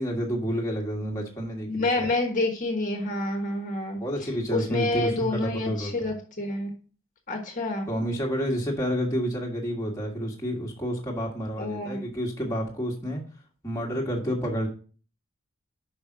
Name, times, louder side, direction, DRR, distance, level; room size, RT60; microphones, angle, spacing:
voice 1, 0.0-2.1 4.0-6.1 7.9-13.2 13.6-14.7, equal, 15° left, -2 dB, 1.5 m, -29 dB
voice 2, 1.6-4.0 4.5-6.7 7.3-7.9 11.6-12.0, left 2 dB, 35° left, 2 dB, 1.3 m, -28 dB
5.5 x 5.2 x 6.0 m, 0.40 s
head